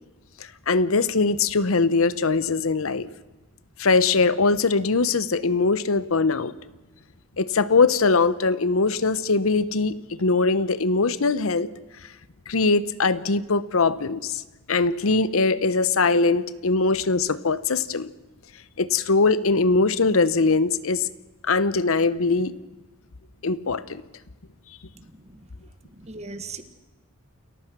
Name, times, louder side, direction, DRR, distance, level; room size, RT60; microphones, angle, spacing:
voice 1, 0.7-3.1 3.8-6.5 7.4-11.7 12.5-14.4 14.7-18.1 18.8-21.1 21.4-22.5 23.4-24.0, left 3 dB, 75° left, 16 dB, 0.9 m, -21 dB
voice 2, 24.9-25.5 25.8-26.6, right 3 dB, 30° right, 11 dB, 1.5 m, -40 dB
29.0 x 15.0 x 6.1 m, 1.1 s
head